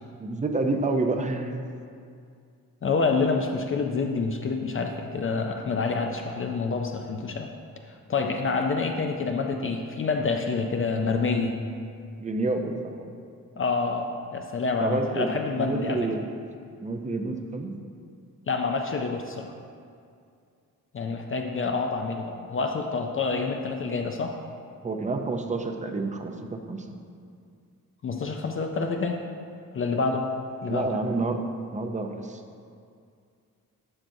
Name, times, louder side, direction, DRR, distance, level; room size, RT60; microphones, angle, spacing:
voice 1, 0.2-1.6 12.2-13.1 14.8-15.3 15.6-16.3 16.8-17.7 24.8-26.9 30.7-31.4 31.7-32.4, right 3 dB, 20° right, 5 dB, 0.5 m, -28 dB
voice 2, 2.8-7.5 7.8-11.6 13.6-16.0 18.5-19.5 20.9-24.3 28.0-29.2 29.7-30.3 30.6-30.9, left 4 dB, 40° left, 4 dB, 0.4 m, -27 dB
11.5 x 6.0 x 2.6 m, 2.3 s
wide cardioid pair, 145°, 35 cm